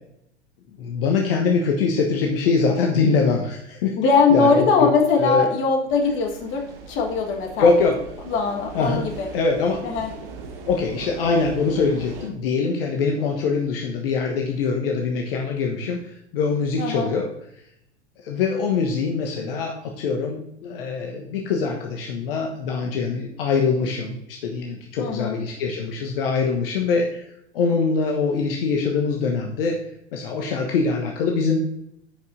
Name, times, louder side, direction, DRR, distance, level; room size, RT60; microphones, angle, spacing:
voice 1, 0.8-3.9 4.3-4.9 5.2-5.5 7.6-8.0 8.7-9.8 10.7-17.3 18.2-27.3 27.5-29.8 30.1-31.6, left 4 dB, 55° left, 1 dB, 1.2 m, -23 dB
voice 2, 4.0-7.7 8.3-9.3 9.8-10.1 16.8-17.1 25.0-25.4, left 4 dB, 35° left, 2 dB, 1.7 m, -21 dB
sound 1, 5.9-12.3, right 4 dB, 45° right, 1.4 m, -39 dB
14.5 x 5.4 x 2.7 m, 0.77 s
figure-of-eight pair, 95°, 34 cm